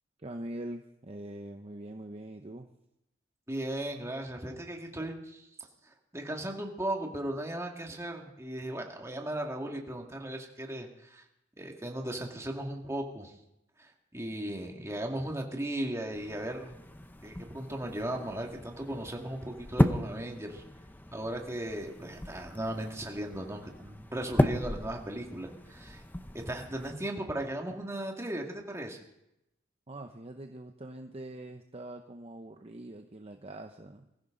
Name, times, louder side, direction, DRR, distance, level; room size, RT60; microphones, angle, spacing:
voice 1, 0.2-2.7 5.0-5.1 29.9-34.0, right 1 dB, 30° right, 5 dB, 0.8 m, -43 dB
voice 2, 3.5-5.2 6.1-11.2 11.6-13.3 13.8-16.8 17.2-20.6 21.1-26.0 26.3-29.0, right 1 dB, 15° right, 1 dB, 2.2 m, -36 dB
sound 1, 16.1-26.9, left 1 dB, 10° left, 0.8 m, -34 dB
23.0 x 15.0 x 3.9 m, 0.85 s
head